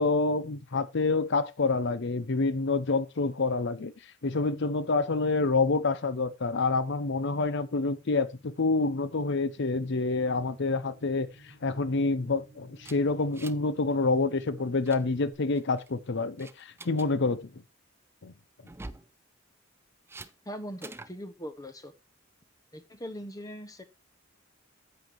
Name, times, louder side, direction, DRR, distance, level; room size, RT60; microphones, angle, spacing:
voice 1, 0.0-3.9 4.2-11.3 11.6-17.4 18.2-18.3, left 3 dB, 60° left, 0.7 m, -27 dB
sound 1, 9.1-15.3, equal, 75° left, 5.2 m, -55 dB
sound 2, 12.8-13.7 14.0-14.2 14.6-15.0 15.6-15.9 16.4-17.1 18.6-19.1 20.1-20.3 20.8-21.1, right 2 dB, 10° right, 0.5 m, -45 dB
voice 2, 20.5-21.9 22.7-23.8, equal, 20° left, 0.9 m, -40 dB
10.5 x 7.8 x 3.1 m
head